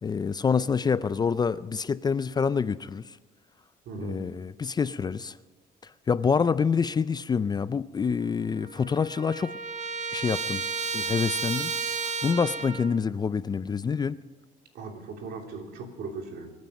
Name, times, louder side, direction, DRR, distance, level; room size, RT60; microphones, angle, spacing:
voice 1, 0.0-3.2 4.0-5.4 6.1-9.5 10.1-10.6 10.9-11.7 12.2-14.2, left 6 dB, 25° left, 16 dB, 0.4 m, -26 dB
voice 2, 3.8-4.3 14.7-16.5, right 4 dB, 70° right, 2 dB, 3.1 m, -38 dB
Trumpet, 8.2-8.3 8.6-13.0, right 5 dB, 45° right, 1.2 m, -32 dB
24.5 x 9.4 x 5.3 m, 1.2 s
cardioid pair, 110°, 17 cm